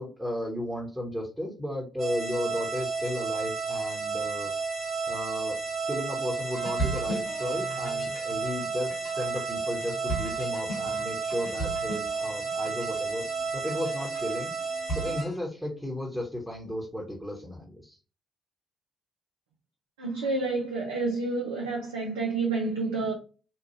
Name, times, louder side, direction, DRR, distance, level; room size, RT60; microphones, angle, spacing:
voice 1, 0.0-4.5 5.1-5.6 5.9-13.2 13.5-14.5 14.9-18.0, left 1 dB, 5° right, 1.0 m, -34 dB
sound 1, 2.0-15.2, right 4 dB, 50° right, 1.2 m, -32 dB
sound 2, 6.5-15.4, right 2 dB, 65° left, 1.0 m, -38 dB
voice 2, 20.0-23.1, right 3 dB, 80° right, 0.4 m, -29 dB
2.9 x 2.3 x 2.6 m
figure-of-eight pair, 40°, 0 cm